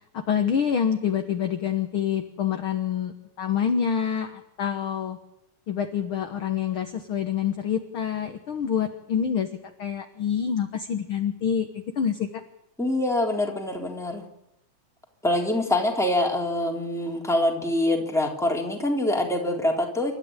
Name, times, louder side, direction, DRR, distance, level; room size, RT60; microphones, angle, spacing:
voice 1, 0.1-5.2 5.7-9.5 9.8-12.4, left 8 dB, 55° left, 6 dB, 1.8 m, -27 dB
voice 2, 12.8-14.3 15.2-20.1, left 1 dB, ahead, 0 dB, 3.4 m, -25 dB
28.5 x 13.5 x 8.9 m, 0.85 s
omnidirectional pair, 3.4 m